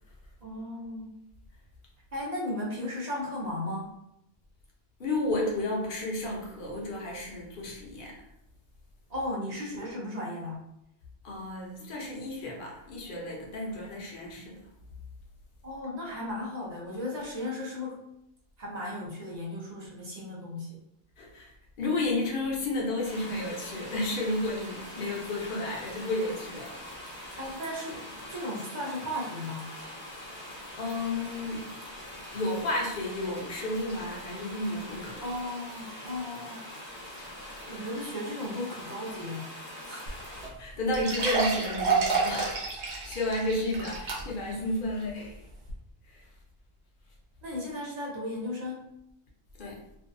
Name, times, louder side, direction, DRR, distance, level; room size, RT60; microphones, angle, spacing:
voice 1, 0.4-1.1 2.1-4.0 9.1-10.6 15.6-18.0 18.6-20.8 27.4-29.7 35.2-36.7 37.7-39.5 39.8-40.0 47.4-48.9, left 1 dB, 40° right, -4 dB, 0.8 m, -35 dB
voice 2, 5.0-8.2 11.2-14.6 21.2-21.5 21.8-26.8 30.8-31.6 32.3-35.3 40.6-42.7 43.0-45.5 46.0-46.3 49.6-49.8, left 2 dB, 55° left, -2 dB, 0.8 m, -32 dB
sound 1, 23.0-40.5, left 1 dB, 10° left, 0.7 m, -43 dB
sound 2, 40.1-40.2 40.4-40.5 40.9-44.5 45.0-45.1 45.7-45.8, right 4 dB, 80° right, 1.0 m, -29 dB
2.6 x 2.3 x 2.6 m, 0.81 s
omnidirectional pair, 1.1 m